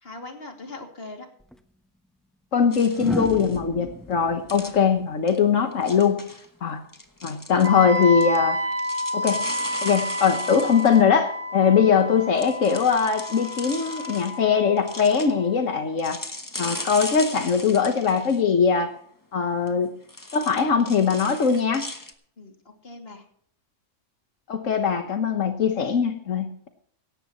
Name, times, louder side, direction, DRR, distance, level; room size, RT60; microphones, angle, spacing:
voice 1, 0.0-1.3 22.4-23.2, left 2 dB, 50° left, 3 dB, 2.8 m, -40 dB
sound 1, 1.4-1.6 2.9-6.0 7.6-7.9, equal, ahead, 0.7 m, -34 dB
voice 2, 2.5-6.2 6.6-6.8 7.2-8.6 9.1-9.5 9.8-16.2 16.6-18.9 19.3-19.9 20.3-21.8 24.5-26.7, left 6 dB, 90° left, 6 dB, 1.6 m, -21 dB
sound 2, 2.7-3.6 4.5-4.8 5.3-5.4 5.7-6.5 6.9-8.4 8.7-11.0 12.4-14.4 14.8-15.3 16.0-18.4 19.7-19.8 20.1-22.1, left 2 dB, 15° left, 1.3 m, -37 dB
Wind instrument woodwind instrument, 7.6-15.6, left 1 dB, 50° right, 1.8 m, -30 dB
17.5 x 15.0 x 3.0 m, 0.63 s
omnidirectional pair, 1.3 m